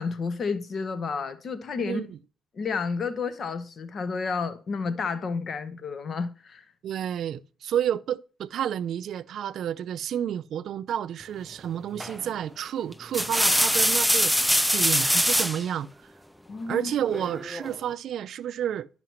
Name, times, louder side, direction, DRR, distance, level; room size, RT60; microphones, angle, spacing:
voice 1, 0.0-2.0 2.5-6.6 16.5-16.9, left 5 dB, 50° left, 0.8 m, -31 dB
voice 2, 1.8-2.2 6.8-14.5 14.7-15.9 16.7-18.9, right 10 dB, 70° right, 0.3 m, -30 dB
industrial welding med, 12.0-12.3 12.9-15.6 17.1-17.8, equal, ahead, 0.4 m, -23 dB
10.5 x 5.7 x 2.9 m
cardioid pair, 100°, 0 cm